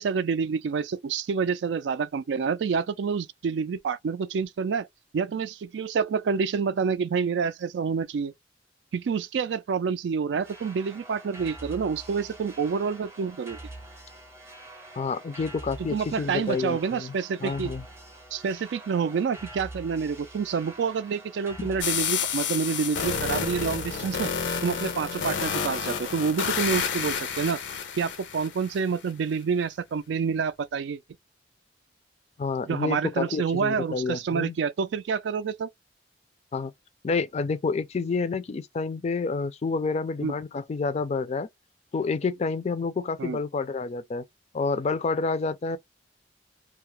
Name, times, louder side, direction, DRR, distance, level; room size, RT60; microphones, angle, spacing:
voice 1, 0.0-4.9 5.1-8.3 8.9-13.6 15.9-17.7 18.3-24.3 24.6-27.6 28.0-31.0 32.6-35.7 40.2-40.3 43.2-43.4, right 6 dB, 75° right, 0.3 m, -28 dB
sound 1, 10.4-27.3, right 2 dB, 15° right, 0.7 m, -45 dB
voice 2, 15.0-17.2 17.4-17.8 21.6-21.7 32.4-34.6 36.5-36.7 37.0-41.5 41.9-44.2 44.5-45.8, left 4 dB, 35° left, 0.3 m, -29 dB
sound 2, 21.8-28.8, left 6 dB, 90° left, 0.5 m, -30 dB
2.3 x 2.0 x 2.9 m
head